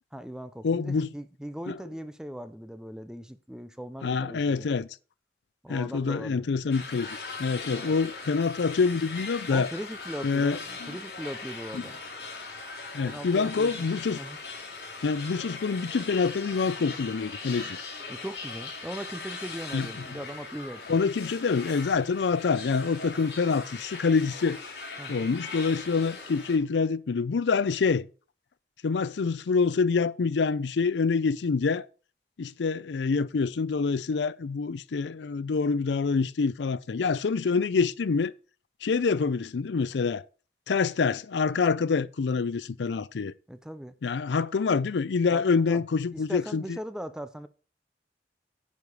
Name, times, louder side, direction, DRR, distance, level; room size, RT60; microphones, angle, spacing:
voice 1, 0.1-4.7 5.6-6.4 7.7-8.0 9.5-12.0 13.0-13.9 14.2-14.4 18.1-21.0 25.0-25.3 43.5-44.0 45.3-45.8 46.1-47.5, equal, 5° right, 0.4 m, -39 dB
voice 2, 0.6-1.1 1.7-1.8 4.0-4.9 5.7-9.7 10.2-11.0 11.7-11.8 12.9-14.2 15.0-17.8 19.7-19.9 20.9-24.6 25.1-28.1 28.8-31.9 32.4-38.3 38.8-40.2 40.7-43.3 44.0-46.8, left 4 dB, 85° left, 0.5 m, -26 dB
sound 1, 6.7-26.6, left 4 dB, 65° left, 3.2 m, -40 dB
9.5 x 4.9 x 5.4 m
head